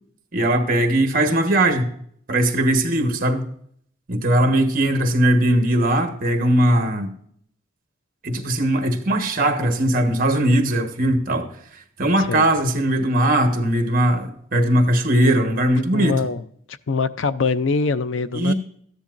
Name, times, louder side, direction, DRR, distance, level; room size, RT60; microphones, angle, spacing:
voice 1, 0.3-1.9 2.3-3.4 4.1-7.1 8.2-16.2 18.3-18.5, right 1 dB, 45° right, 1.4 m, -19 dB
voice 2, 15.9-16.4 16.9-18.5, left 4 dB, 75° left, 0.5 m, -23 dB
14.0 x 10.0 x 2.6 m
head